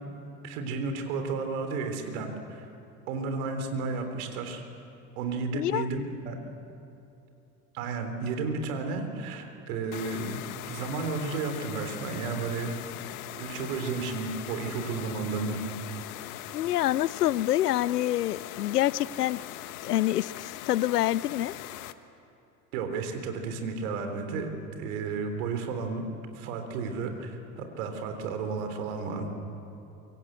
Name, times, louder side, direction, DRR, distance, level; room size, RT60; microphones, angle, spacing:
voice 1, 0.4-2.7 3.1-4.6 5.2-6.4 7.7-13.1 13.4-15.6 22.7-24.5 24.8-26.0 26.4-29.3, right 4 dB, 65° right, 6 dB, 3.7 m, -33 dB
voice 2, 5.5-5.9 16.5-19.4 19.8-21.5, left 14 dB, 80° left, 22 dB, 0.6 m, -26 dB
sound 1, 9.9-21.9, left 13 dB, 65° left, 1.3 m, -41 dB
24.5 x 23.5 x 8.1 m, 3.0 s
figure-of-eight pair, 70°, 46 cm